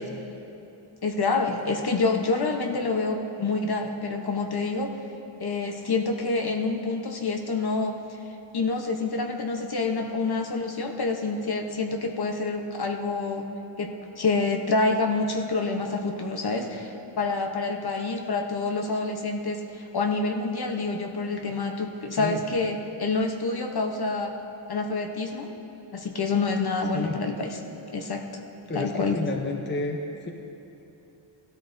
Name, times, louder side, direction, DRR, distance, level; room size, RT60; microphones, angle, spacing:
voice 1, 1.0-4.9 5.4-8.0 8.5-13.4 13.8-24.3 24.7-25.5 25.9-27.6 27.9-28.4 28.7-29.2, left 3 dB, 50° left, 3 dB, 0.9 m, -27 dB
voice 2, 28.7-30.0 30.2-30.3, left 3 dB, 20° left, 2 dB, 0.6 m, -30 dB
17.0 x 13.0 x 2.6 m, 2.9 s
wide cardioid pair, 160°, 50 cm